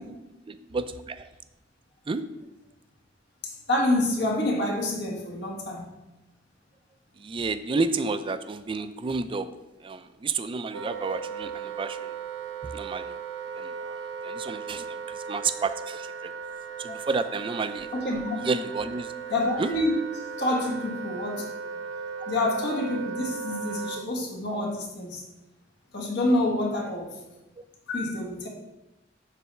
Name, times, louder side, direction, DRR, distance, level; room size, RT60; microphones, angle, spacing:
voice 1, 0.5-1.3 2.1-2.2 7.2-9.5 9.8-12.2 12.6-13.1 13.6-14.0 14.2-16.3 16.8-19.1 19.6-19.7, right 4 dB, 30° right, 11 dB, 0.4 m, -31 dB
voice 2, 3.4-6.0 16.9-17.0 17.9-18.4 19.3-19.9 20.4-21.4 22.3-25.2 25.9-27.2 27.9-28.5, left 1 dB, 65° left, 0 dB, 1.5 m, -27 dB
Wind instrument woodwind instrument, 10.7-24.1, right 6 dB, 80° right, 0.5 m, -37 dB
7.6 x 3.3 x 5.5 m, 0.97 s
head